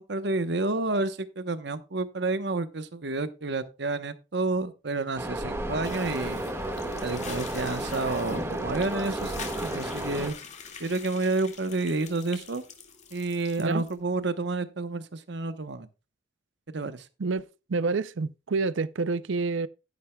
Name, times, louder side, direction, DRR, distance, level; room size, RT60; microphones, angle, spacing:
voice 1, 0.0-6.4 7.0-10.4 10.8-12.6 13.1-15.9 16.7-17.1, right 3 dB, 60° right, 1.0 m, -30 dB
sound 1, 5.2-10.3, right 1 dB, 15° right, 1.7 m, -32 dB
sound 2, 5.8-13.9, left 6 dB, 35° left, 2.0 m, -45 dB
voice 2, 17.2-19.7, right 4 dB, 80° right, 0.5 m, -28 dB
12.0 x 10.5 x 2.3 m
head